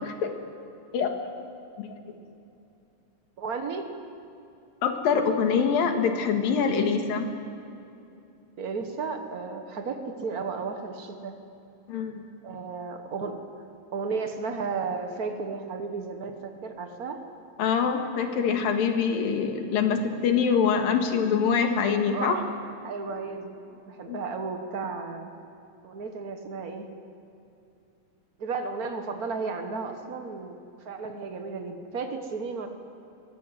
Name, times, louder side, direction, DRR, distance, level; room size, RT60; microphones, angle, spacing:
voice 1, 0.0-0.3 0.9-1.1 1.8-1.9 4.8-7.3 11.9-12.2 17.6-22.4 24.1-24.2, left 6 dB, 85° left, 5 dB, 3.5 m, -24 dB
voice 2, 3.4-3.9 8.6-11.4 12.4-13.4 13.9-17.2 22.1-22.5 22.8-25.3 25.8-26.9 28.4-32.7, right 4 dB, 75° right, 5 dB, 0.8 m, -34 dB
23.0 x 17.0 x 9.6 m, 2.7 s
omnidirectional pair, 4.0 m